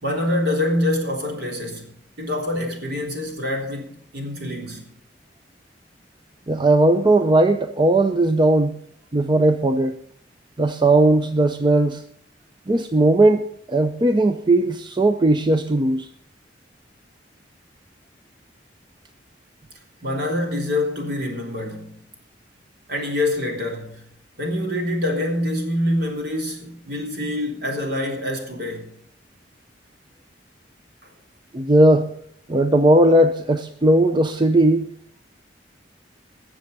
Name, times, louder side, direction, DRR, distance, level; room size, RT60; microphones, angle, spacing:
voice 1, 0.0-4.8 20.0-22.0 22.9-24.0 24.4-28.9, left 1 dB, 65° right, 3.6 m, -25 dB
voice 2, 6.5-8.8 9.1-10.0 10.6-12.0 12.7-16.1 31.5-32.1 32.5-34.9, right 1 dB, 25° right, 0.6 m, -17 dB
20.0 x 7.3 x 5.4 m
head